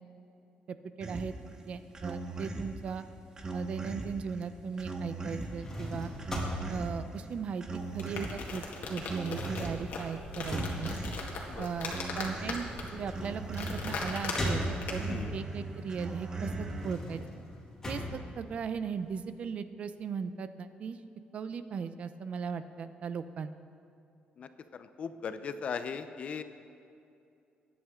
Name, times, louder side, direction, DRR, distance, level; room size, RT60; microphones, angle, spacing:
voice 1, 0.7-1.3 1.7-3.1 3.5-6.1 6.7-7.6 7.9-8.6 8.9-11.0 11.6-12.7 12.9-17.2 17.9-21.0 21.3-23.5, right 6 dB, 45° right, 11 dB, 0.5 m, -37 dB
sound 1, 1.0-16.9, right 2 dB, 20° right, 1.0 m, -40 dB
sound 2, 5.3-8.1 8.4-15.2 15.7-19.2, left 1 dB, 15° left, 2.4 m, -40 dB
sound 3, 7.8-15.2, left 3 dB, 65° left, 2.0 m, -39 dB
voice 2, 24.4-26.4, left 6 dB, 40° left, 10 dB, 0.6 m, -38 dB
22.5 x 9.5 x 3.7 m, 2.6 s
cardioid pair, 170°, 3 cm